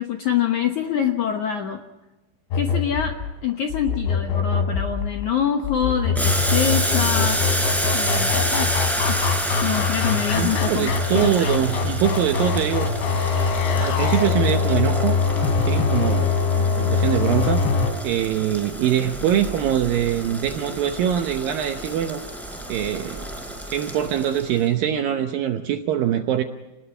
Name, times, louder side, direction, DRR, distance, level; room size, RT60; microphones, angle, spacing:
voice 1, 0.0-1.8 2.5-3.2 3.4-7.4 7.9-8.7 9.0-9.2 9.6-11.5, left 8 dB, 70° left, 4 dB, 1.8 m, -25 dB
sound 1, 2.5-17.9, left 5 dB, 90° left, 5.0 m, -23 dB
Boiling, 6.1-24.6, right 1 dB, ahead, 4.1 m, -29 dB
voice 2, 10.3-12.9 13.8-15.2 15.6-22.2 22.7-23.3 23.7-26.4, right 10 dB, 75° right, 6 dB, 2.2 m, -23 dB
29.0 x 20.0 x 5.6 m, 1.1 s
omnidirectional pair, 5.1 m